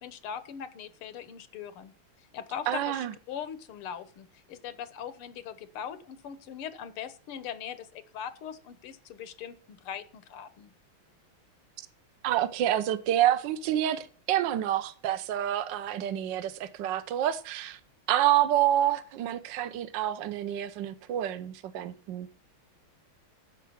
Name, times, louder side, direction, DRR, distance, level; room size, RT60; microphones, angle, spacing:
voice 1, 0.0-1.9 2.3-10.7, left 8 dB, 85° left, 1.9 m, -40 dB
voice 2, 2.7-3.1 12.2-17.8 18.1-22.3, right 12 dB, 65° right, 1.5 m, -28 dB
10.5 x 7.4 x 5.8 m
omnidirectional pair, 2.3 m